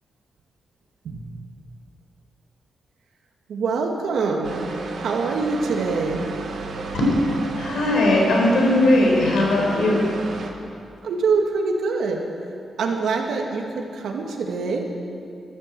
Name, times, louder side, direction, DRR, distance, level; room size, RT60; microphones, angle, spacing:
voice 1, 3.5-4.7 5.0-6.2 11.0-12.2 12.8-14.8, right 4 dB, 75° right, 1 dB, 2.1 m, -24 dB
sound 1, 4.4-10.5, right 3 dB, 55° right, 1.6 m, -33 dB
voice 2, 6.9-10.1, left 1 dB, 85° left, -2 dB, 4.3 m, -19 dB
13.5 x 13.5 x 7.7 m, 2.5 s
wide cardioid pair, 175°, 0 cm